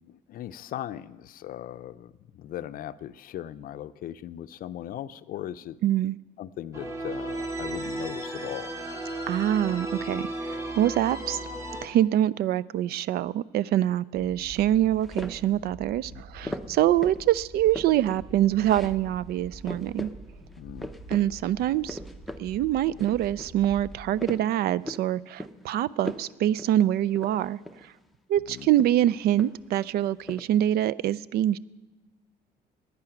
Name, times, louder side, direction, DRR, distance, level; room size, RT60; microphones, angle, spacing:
voice 1, 0.1-5.8 6.4-8.8 16.1-16.6 20.6-20.9 28.5-28.7, left 11 dB, 60° left, 14 dB, 0.5 m, -38 dB
voice 2, 5.8-6.2 9.3-11.4 11.8-20.1 21.1-22.0 22.4-27.6 28.3-31.6, right 12 dB, 65° right, 21 dB, 0.4 m, -25 dB
sound 1, 6.7-11.9, right 1 dB, 20° right, 1.9 m, -34 dB
sound 2, 14.1-24.0, right 1 dB, 45° right, 3.5 m, -46 dB
sound 3, 15.0-15.6 16.5-17.3 17.5-18.2 18.6-19.0 19.3-19.4 19.7-20.2 20.5-21.2 21.6-22.5 22.8-23.5 23.9-25.1 25.4-25.7 26.0-26.3 26.6-26.7 27.1-27.9 28.6-29.7 30.0-30.4, left 1 dB, ahead, 0.7 m, -38 dB
10.5 x 9.7 x 8.9 m, 1.1 s
cardioid pair, 110°, 17 cm